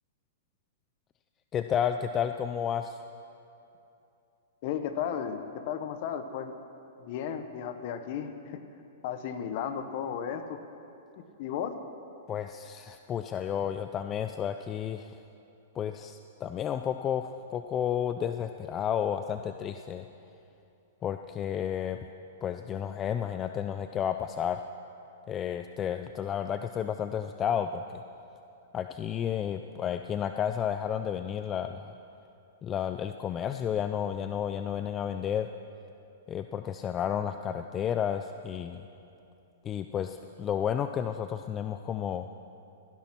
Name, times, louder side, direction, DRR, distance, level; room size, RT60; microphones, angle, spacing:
voice 1, 1.5-3.0 12.3-15.2 15.7-20.0 21.0-22.0 22.4-24.6 25.3-28.0 28.7-31.9 32.6-35.5 36.3-38.9 39.6-42.3, left 9 dB, 25° left, 8 dB, 0.4 m, -32 dB
voice 2, 4.6-6.5 7.0-8.6 9.0-10.6 11.2-11.7, left 8 dB, 50° left, 9 dB, 1.2 m, -34 dB
16.5 x 10.5 x 6.1 m, 2.8 s
hypercardioid pair, 135°, 0 cm